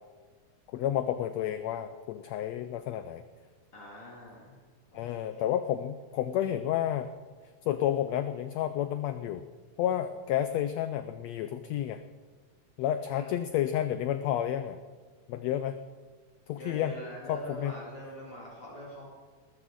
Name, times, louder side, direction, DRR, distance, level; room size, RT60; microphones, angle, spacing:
voice 1, 0.7-3.2 4.9-7.1 7.6-9.4 9.8-12.0 12.8-14.8 15.3-15.8 16.5-16.9 17.3-17.7, left 11 dB, 80° left, 10 dB, 1.5 m, -30 dB
voice 2, 3.7-4.6 4.9-5.5 13.1-13.3 16.5-19.2, equal, 45° left, -4 dB, 3.2 m, -44 dB
19.5 x 14.0 x 3.8 m, 1.5 s
omnidirectional pair, 3.5 m